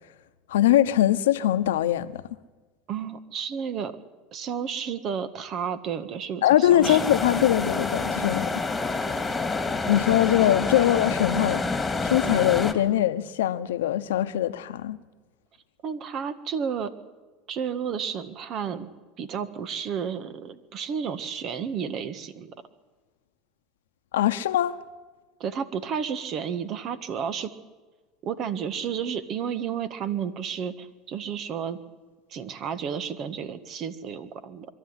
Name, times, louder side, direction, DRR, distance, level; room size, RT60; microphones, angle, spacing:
voice 1, 0.5-2.2 6.4-8.5 9.9-11.6 12.0-15.0 24.1-24.8, left 12 dB, 85° left, 1.0 m, -22 dB
voice 2, 2.9-3.9 4.3-7.1 15.8-16.9 17.5-18.9 19.2-22.5 25.4-27.5 28.2-31.8 32.3-34.7, right 7 dB, 45° right, 1.7 m, -32 dB
sound 1, 6.8-12.7, left 3 dB, 15° left, 2.2 m, -28 dB
23.5 x 13.0 x 9.9 m
supercardioid pair, 105°, 0 cm